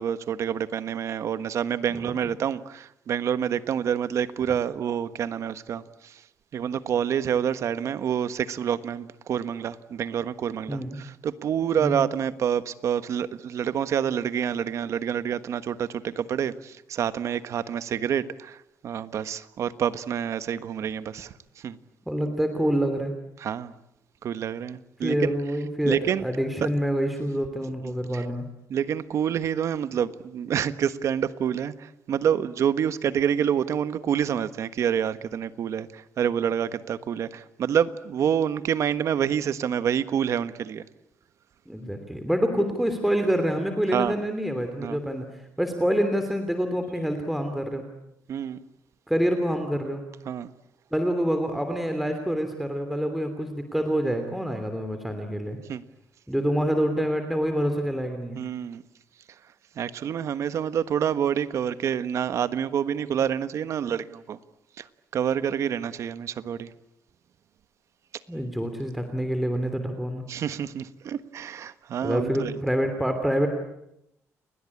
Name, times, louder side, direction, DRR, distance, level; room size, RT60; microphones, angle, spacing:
voice 1, 0.0-2.6 3.1-5.8 6.5-10.8 11.2-15.9 16.2-16.5 16.9-18.2 18.8-21.3 21.6-21.7 23.4-23.7 24.2-25.1 25.9-26.2 28.7-31.7 32.1-35.9 36.2-37.3 37.6-40.8 43.9-44.1 44.8-45.0 48.3-48.6 50.3-50.5 55.7-55.8 58.4-58.8 59.8-64.4 65.1-66.7 70.3-72.5, right 8 dB, 60° right, 1.4 m, -27 dB
voice 2, 1.9-2.3 10.7-11.0 11.8-12.1 22.1-23.1 25.0-28.4 41.7-47.8 49.1-50.0 50.9-55.6 56.3-58.4 68.3-70.2 72.0-73.5, equal, ahead, 3.0 m, -26 dB
30.0 x 21.0 x 8.5 m
cardioid pair, 115°, 6 cm